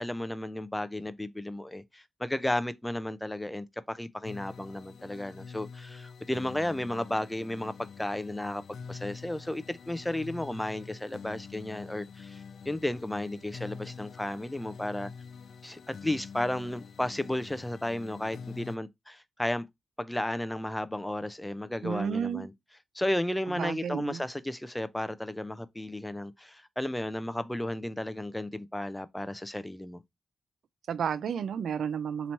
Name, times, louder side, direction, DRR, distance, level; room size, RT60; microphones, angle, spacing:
voice 1, 0.0-8.6 8.9-15.1 15.6-19.7 20.0-22.5 22.9-30.0, left 1 dB, 10° left, 0.4 m, -33 dB
sound 1, 4.2-18.8, left 6 dB, 80° left, 0.3 m, -46 dB
voice 2, 21.8-22.5 23.6-24.2 30.9-32.3, right 7 dB, 90° right, 0.3 m, -32 dB
2.9 x 2.7 x 4.4 m
cardioid pair, 95°, 0 cm